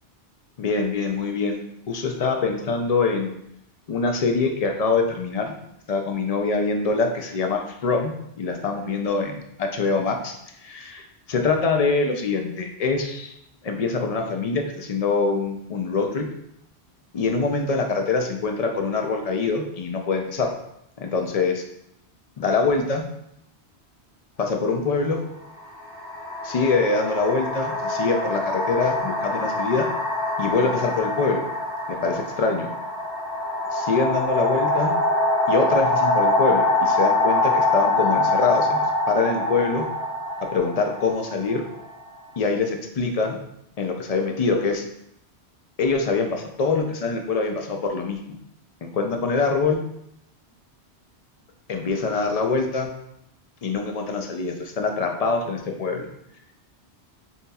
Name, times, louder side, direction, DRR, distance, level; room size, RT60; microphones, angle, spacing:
voice 1, 0.6-3.3 3.9-5.6 5.9-10.3 10.6-11.0 11.3-13.3 13.6-16.3 17.1-20.5 21.0-21.6 22.4-23.1 24.4-25.2 26.4-29.9 30.4-31.4 31.9-32.7 33.7-34.9 35.5-38.8 39.1-39.9 40.4-41.6 42.4-43.4 43.8-44.8 45.8-48.4 48.8-49.8 51.7-52.9 53.6-56.1, left 4 dB, 50° left, 4 dB, 0.5 m, -24 dB
sound 1, 24.4-24.6 25.6-42.2, left 2 dB, 80° left, 1.4 m, -24 dB
6.6 x 2.9 x 2.3 m, 0.78 s
omnidirectional pair, 1.1 m